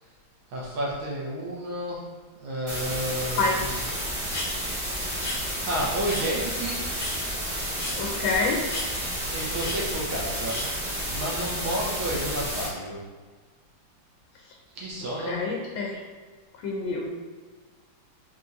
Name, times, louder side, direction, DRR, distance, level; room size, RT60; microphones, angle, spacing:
voice 1, 0.5-2.0 2.4-3.8 5.6-6.9 9.3-10.6 11.1-13.0 14.8-15.4, right 1 dB, 85° right, -4 dB, 1.9 m, -31 dB
sound 1, 2.7-12.7, equal, 35° right, 0.9 m, -31 dB
sound 2, 4.3-4.5 5.1-5.4 6.1-6.2 6.9-7.1 7.8-8.0 8.7-8.9 9.5-9.8 10.5-10.7, left 2 dB, 45° left, 0.6 m, -33 dB
voice 2, 8.0-8.6 15.2-16.0 16.6-17.1, left 3 dB, 80° left, -1 dB, 1.3 m, -27 dB
4.4 x 3.7 x 2.7 m, 1.4 s
omnidirectional pair, 2.2 m